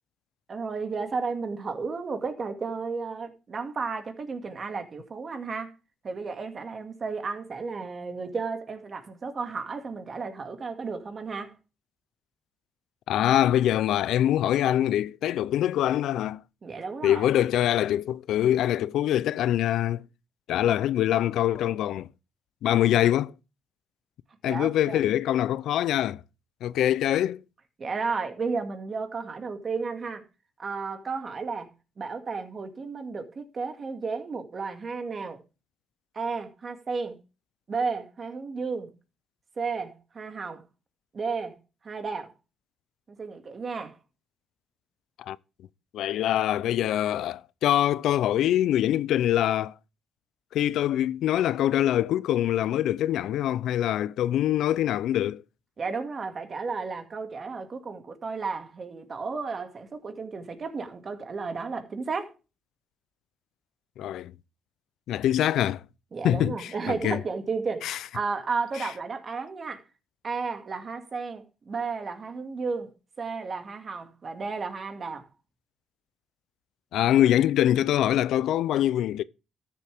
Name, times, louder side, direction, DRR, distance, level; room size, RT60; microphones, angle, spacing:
voice 1, 0.5-5.7 6.0-11.6 16.6-17.3 24.4-25.0 27.8-30.2 30.6-35.4 36.1-37.2 37.7-38.9 39.6-40.6 41.1-41.6 41.8-42.3 43.1-44.0 55.8-62.3 66.1-69.8 70.2-72.9 73.2-75.3, right 4 dB, 40° right, 2.0 m, -33 dB
voice 2, 13.1-16.4 17.0-20.0 20.5-22.1 22.6-23.3 24.4-26.2 26.6-27.4 45.2-45.4 45.9-49.7 50.5-55.4 64.0-64.3 65.1-65.8 66.2-67.2 67.8-68.0 68.8-68.9 76.9-79.2, left 12 dB, 80° left, 0.4 m, -24 dB
13.0 x 7.2 x 3.5 m
cardioid pair, 90°, 0 cm